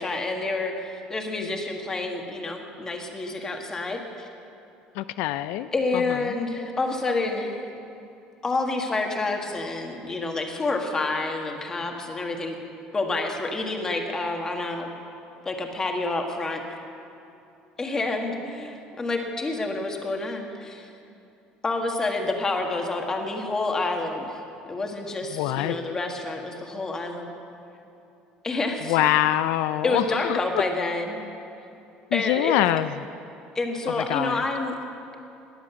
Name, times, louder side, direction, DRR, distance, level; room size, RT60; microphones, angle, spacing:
voice 1, 0.0-4.3 5.7-7.6 8.4-12.5 12.9-14.9 15.4-16.6 17.8-20.9 21.6-24.4 24.7-27.3 28.4-29.0 29.8-31.2 32.1-32.6 33.5-34.8, left 2 dB, 20° left, 3 dB, 1.6 m, -28 dB
voice 2, 5.0-5.7 25.3-25.7 28.9-30.4 32.1-32.9 34.0-34.4, left 14 dB, 85° left, 13 dB, 0.3 m, -24 dB
20.5 x 7.7 x 7.0 m, 2.8 s
cardioid pair, 135°, 3 cm